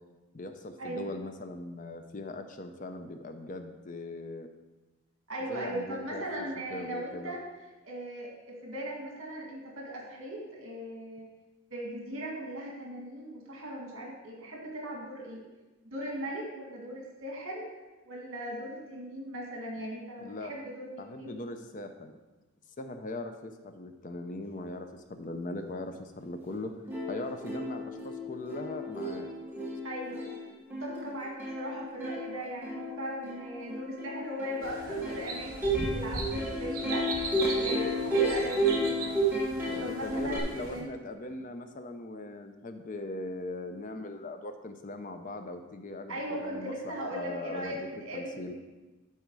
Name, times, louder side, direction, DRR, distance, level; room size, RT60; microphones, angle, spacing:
voice 1, 0.3-4.5 5.5-7.3 20.2-20.5 21.0-22.2 22.8-26.7 27.1-29.3 39.7-48.5, left 2 dB, 40° left, 7 dB, 0.5 m, -40 dB
voice 2, 5.3-7.4 7.8-11.3 11.7-15.4 15.8-17.6 18.1-21.4 29.8-30.3 30.8-39.3 39.8-40.9 46.1-48.5, right 1 dB, 65° right, -1 dB, 1.9 m, -38 dB
Plucked string instrument, 26.5-26.6 26.9-40.4, right 1 dB, 10° right, 1.4 m, -32 dB
sound 1, 34.6-40.8, right 2 dB, 40° right, 1.4 m, -39 dB
12.0 x 4.3 x 4.7 m, 1.1 s
head